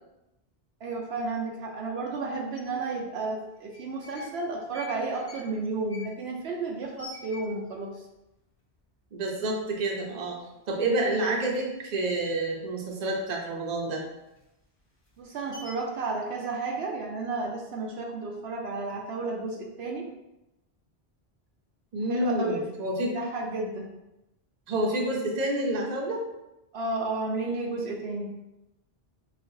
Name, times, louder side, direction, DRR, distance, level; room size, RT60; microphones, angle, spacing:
voice 1, 0.8-7.9 15.2-20.0 22.1-22.6 23.0-23.9 26.7-28.3, right 3 dB, 75° right, 0 dB, 0.8 m, -32 dB
sound 1, 2.5-2.6 3.5-4.3 4.6-7.9 8.2-8.3 8.5-9.1 9.5-9.6 9.9-10.7 11.0-13.4 13.7-16.0, left 2 dB, 35° left, 0.8 m, -48 dB
voice 2, 9.1-10.4 10.7-14.0 21.9-23.2 24.7-26.2, right 1 dB, 45° right, -1 dB, 0.7 m, -28 dB
4.9 x 2.4 x 2.7 m, 0.94 s
omnidirectional pair, 1.1 m